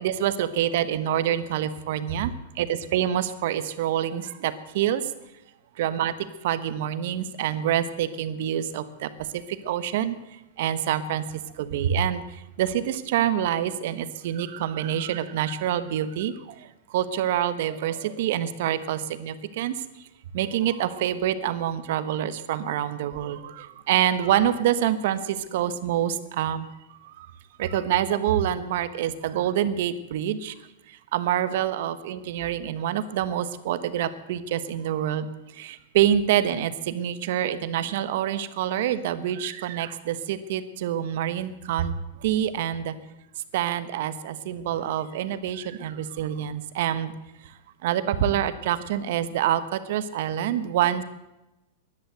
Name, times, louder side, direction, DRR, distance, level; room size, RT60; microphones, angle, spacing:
voice 1, 0.0-2.3 2.6-5.0 5.8-6.1 6.4-9.1 9.6-10.1 10.6-11.2 11.6-12.2 12.6-16.3 16.9-19.8 20.3-26.6 27.6-30.5 31.1-35.3 35.6-41.9 42.2-42.9 43.5-47.1 47.8-51.0, right 10 dB, 65° right, 12 dB, 1.2 m, -26 dB
13.5 x 11.0 x 8.0 m, 0.97 s
hypercardioid pair, 135°, 0 cm